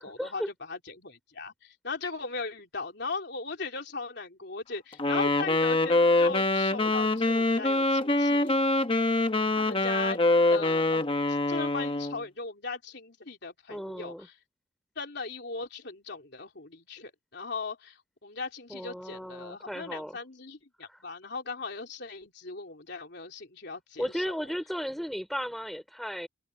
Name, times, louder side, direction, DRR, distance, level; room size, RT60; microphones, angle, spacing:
voice 1, 0.0-8.9 9.6-10.2 10.5-14.3 15.0-24.4, left 4 dB, 60° left, 3.5 m, -38 dB
Wind instrument woodwind instrument, 5.0-12.2, left 2 dB, 25° left, 1.1 m, -25 dB
voice 2, 13.7-14.3 18.7-20.2 20.9-21.0 24.0-26.3, equal, ahead, 3.8 m, -35 dB
open air
head